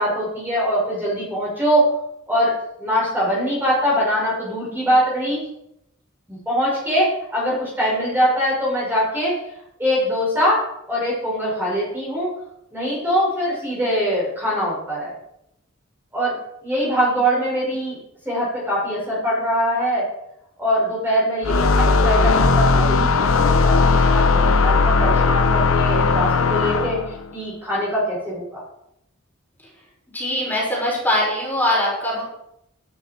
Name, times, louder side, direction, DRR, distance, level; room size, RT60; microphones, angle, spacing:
voice 1, 0.0-1.9 2.3-2.5 2.8-5.5 6.3-9.4 9.8-12.3 12.7-15.1 16.1-16.4 16.6-18.0 18.2-20.1 20.6-27.0 27.3-28.6, equal, 10° right, -6 dB, 5.6 m, -22 dB
sound 1, 21.4-27.2, left 4 dB, 90° left, 0.8 m, -17 dB
voice 2, 30.1-32.2, left 1 dB, 10° left, -5 dB, 6.1 m, -22 dB
12.5 x 12.0 x 4.5 m, 0.79 s
head